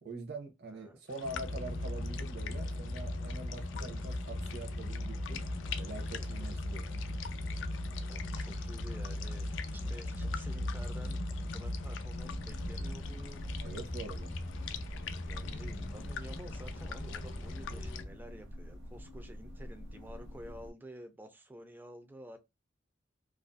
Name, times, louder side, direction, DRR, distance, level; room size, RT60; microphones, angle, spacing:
voice 1, 0.0-5.4 5.8-7.0 13.6-14.4, right 2 dB, 55° right, 0.6 m, -44 dB
voice 2, 0.7-1.0 6.1-6.5 8.0-11.2 11.5-13.6 15.3-22.4, right 1 dB, 10° right, 0.3 m, -51 dB
sound 1, 1.1-18.0, left 8 dB, 70° left, 0.3 m, -47 dB
sound 2, 1.2-18.1, left 1 dB, 40° left, 0.6 m, -38 dB
sound 3, 12.1-20.7, equal, 80° right, 1.0 m, -47 dB
2.4 x 2.2 x 2.5 m
head